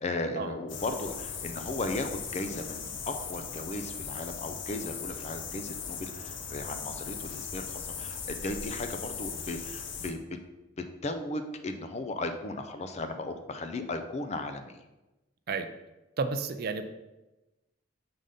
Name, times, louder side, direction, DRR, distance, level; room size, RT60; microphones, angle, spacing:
voice 1, 0.0-10.2 11.0-14.8, left 2 dB, 35° left, 7 dB, 0.5 m, -36 dB
sound 1, 0.7-10.1, left 6 dB, 75° left, 0.7 m, -39 dB
voice 2, 16.2-16.8, right 4 dB, 55° right, 9 dB, 0.4 m, -31 dB
5.4 x 3.8 x 5.0 m, 1.0 s
head